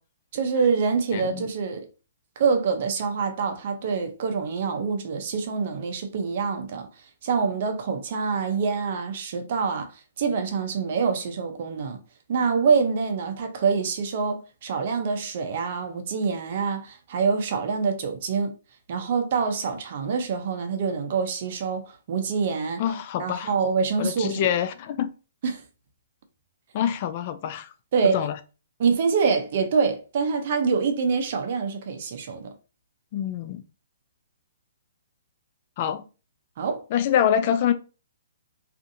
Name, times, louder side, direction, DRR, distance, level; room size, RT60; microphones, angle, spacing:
voice 1, 0.3-1.9 2.4-6.9 7.2-9.9 10.2-12.0 12.3-18.5 18.9-22.8 23.2-24.5 25.4-25.6 27.9-28.2 28.8-32.5 36.6-36.8, right 5 dB, 50° right, 0.6 m, -25 dB
voice 2, 1.1-1.4 22.8-23.5 24.0-25.1 26.7-27.7 28.1-28.4 33.1-33.6 35.8-36.1 36.9-37.7, left 9 dB, 40° left, 0.3 m, -25 dB
2.5 x 2.5 x 2.6 m
hypercardioid pair, 140°, 0 cm